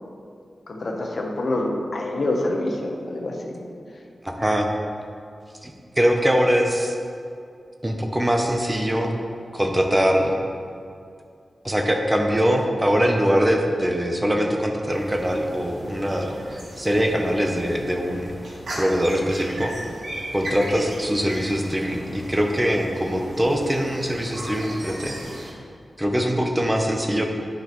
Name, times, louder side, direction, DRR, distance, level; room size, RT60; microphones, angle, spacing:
voice 1, 0.7-3.6, left 1 dB, 50° left, 0 dB, 0.9 m, -26 dB
voice 2, 4.2-4.7 5.6-7.0 7.8-9.2 9.5-10.4 11.6-16.4 16.8-18.3 18.8-19.7 20.3-25.5 26.0-27.2, equal, 10° right, 2 dB, 0.6 m, -22 dB
sound 1, 14.9-25.5, right 1 dB, 70° right, 1.4 m, -37 dB
10.0 x 5.5 x 3.0 m, 2.4 s
wide cardioid pair, 150°, 0 cm